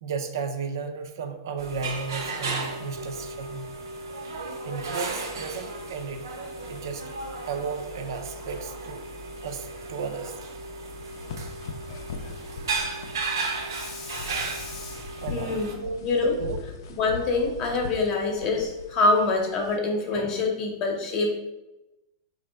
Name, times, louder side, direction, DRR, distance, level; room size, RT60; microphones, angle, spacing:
voice 1, 0.0-3.7 4.6-6.3 6.7-7.1 7.5-9.0 9.4-10.4 12.4-12.7 14.7-16.0 16.4-16.6, right 5 dB, 70° right, 6 dB, 0.4 m, -34 dB
sound 1, 1.6-15.7, right 3 dB, 90° right, 0.8 m, -35 dB
sound 2, 11.0-19.8, left 4 dB, 65° left, 0.4 m, -41 dB
voice 2, 11.9-12.3 13.7-15.0 15.3-15.7 16.0-16.3 17.0-21.3, left 3 dB, 30° left, 2 dB, 0.7 m, -26 dB
4.1 x 2.5 x 3.3 m, 0.99 s
supercardioid pair, 155°, 2 cm